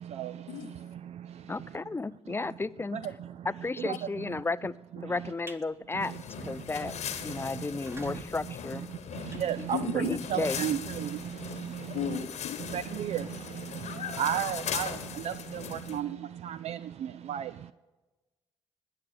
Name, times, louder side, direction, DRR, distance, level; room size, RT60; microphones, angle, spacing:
voice 1, 0.0-1.8 2.9-3.5 3.8-4.3 5.0-5.3 5.9-6.9 7.3-7.7 8.0-8.2 8.7-12.2 12.6-17.7, right 10 dB, 60° right, 0.4 m, -35 dB
voice 2, 1.5-3.0 3.4-6.1 6.4-6.9 7.2-8.9 9.6-9.7 9.9-10.6, left 3 dB, 20° left, 0.4 m, -33 dB
sound 1, 5.2-5.6 6.1-6.3 6.7-6.8 7.0-7.1 7.6-10.2, right 2 dB, 20° right, 1.3 m, -49 dB
sound 2, 6.0-16.0, left 7 dB, 65° left, 1.2 m, -39 dB
voice 3, 9.7-10.2 11.9-12.7, left 9 dB, 80° left, 0.9 m, -34 dB
19.5 x 6.6 x 6.9 m
hypercardioid pair, 45°, 13 cm